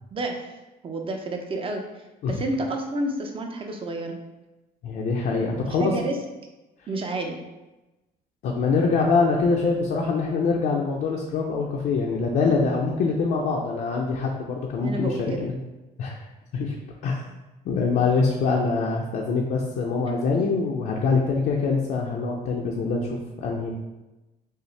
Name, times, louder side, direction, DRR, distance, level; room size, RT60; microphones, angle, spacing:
voice 1, 0.1-0.4 0.8-1.8 2.2-4.2 5.8-6.2 6.9-7.4 14.8-15.5, right 2 dB, 30° right, 3 dB, 0.6 m, -30 dB
voice 2, 4.8-6.0 8.4-15.6 16.0-16.2 16.5-16.7 17.0-17.2 17.6-23.7, left 4 dB, 60° left, -2 dB, 0.5 m, -24 dB
5.4 x 2.0 x 3.2 m, 1.1 s
cardioid pair, 110°, 17 cm